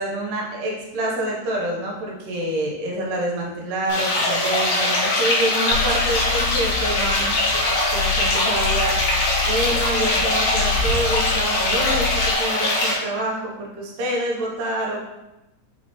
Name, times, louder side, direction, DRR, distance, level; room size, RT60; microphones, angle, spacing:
voice 1, 0.0-7.3 7.9-9.0 9.4-15.0, right 1 dB, 80° right, -2 dB, 2.4 m, -27 dB
sound 1, 3.9-12.9, left 2 dB, 65° left, 1.7 m, -22 dB
Car / Engine, 5.7-12.3, left 7 dB, 90° left, 2.3 m, -28 dB
5.4 x 3.2 x 2.9 m, 0.99 s
omnidirectional pair, 4.0 m